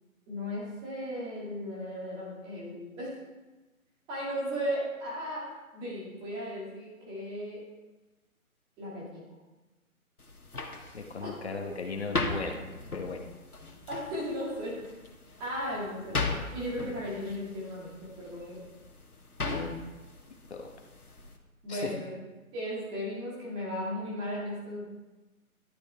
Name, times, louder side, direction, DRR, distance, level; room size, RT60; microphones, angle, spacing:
voice 1, 0.3-3.1 4.1-7.6 8.8-9.3 11.2-11.3 13.9-15.0 15.4-18.6 19.4-19.6 21.6-22.2 22.5-24.8, equal, 10° right, -5 dB, 2.1 m, -36 dB
sound 1, 10.2-21.4, left 3 dB, 90° left, 1.6 m, -39 dB
voice 2, 10.9-13.2 19.5-19.7 20.5-20.7 21.7-21.9, left 4 dB, 45° left, 3 dB, 1.5 m, -37 dB
11.5 x 8.5 x 3.4 m, 1.2 s
figure-of-eight pair, 155°, 43 cm